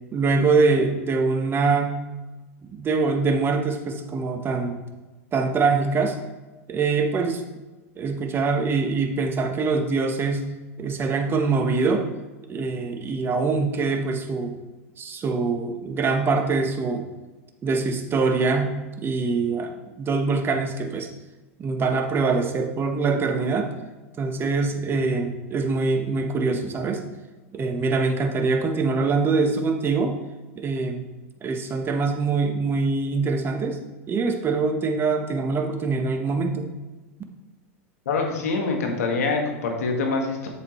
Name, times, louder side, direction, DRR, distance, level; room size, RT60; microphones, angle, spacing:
voice 1, 0.1-2.0 2.7-4.8 5.3-6.2 6.7-7.4 8.0-10.5 10.8-12.1 12.5-14.6 15.0-17.0 17.6-21.1 21.6-23.7 24.2-27.0 27.5-30.1 30.6-31.0 31.4-33.8 34.1-36.7, right 4 dB, 30° right, 5 dB, 1.2 m, -24 dB
voice 2, 38.1-40.5, left 3 dB, 80° left, 2 dB, 1.9 m, -25 dB
7.9 x 7.6 x 3.2 m, 1.2 s
hypercardioid pair, 100°, 8 cm